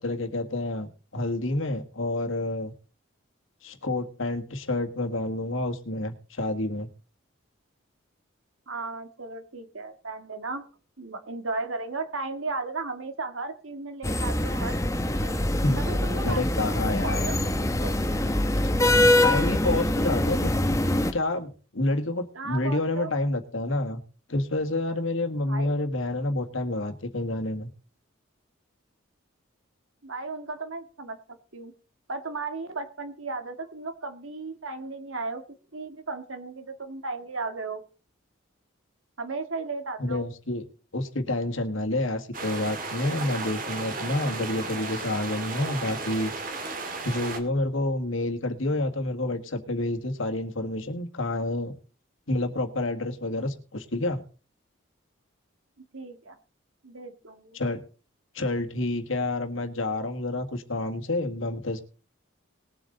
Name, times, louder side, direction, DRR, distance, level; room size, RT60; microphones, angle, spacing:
voice 1, 0.0-2.7 3.6-6.9 15.6-15.8 16.2-17.3 19.2-20.6 21.1-24.0 24.3-27.7 40.0-40.7 40.9-46.3 47.0-51.7 52.3-54.2 57.5-57.8 58.3-61.8, left 2 dB, 75° left, 6 dB, 1.8 m, -28 dB
voice 2, 8.7-10.7 11.0-15.4 15.8-16.4 16.7-18.0 22.3-23.1 25.4-25.8 30.0-31.7 32.1-35.4 35.7-37.8 39.2-40.2 55.8-56.4 56.8-57.6, right 3 dB, 80° right, 8 dB, 1.9 m, -35 dB
sound 1, 14.0-21.1, left 1 dB, 15° left, 1.1 m, -24 dB
sound 2, 42.3-47.4, right 3 dB, 40° right, 2.0 m, -34 dB
20.0 x 7.8 x 4.0 m, 0.37 s
head